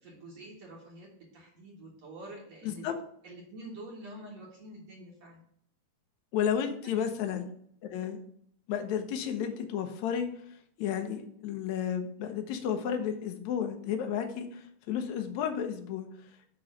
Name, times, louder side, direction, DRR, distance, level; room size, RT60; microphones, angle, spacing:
voice 1, 0.0-2.8 3.2-5.4 6.8-7.0, right 1 dB, 55° right, -3 dB, 2.5 m, -47 dB
voice 2, 2.6-3.0 6.3-7.5 7.9-8.2 8.7-10.3 10.8-16.1, left 8 dB, 75° left, 5 dB, 1.9 m, -32 dB
8.7 x 3.1 x 6.2 m, 0.66 s
omnidirectional pair, 4.1 m